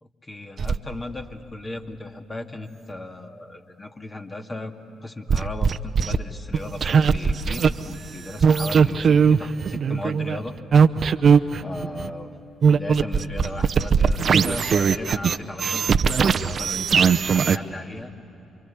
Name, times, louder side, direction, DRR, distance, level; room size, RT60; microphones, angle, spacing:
voice 1, 0.0-4.7 5.0-10.6 11.6-12.3 12.6-18.1, left 2 dB, 25° left, 4 dB, 2.4 m, -36 dB
sound 1, 0.6-0.8 5.3-6.2 6.5-7.7 8.4-12.1 12.6-17.6, right 6 dB, 50° right, 0.8 m, -19 dB
28.0 x 25.0 x 8.6 m, 2.9 s
hypercardioid pair, 45°, 0 cm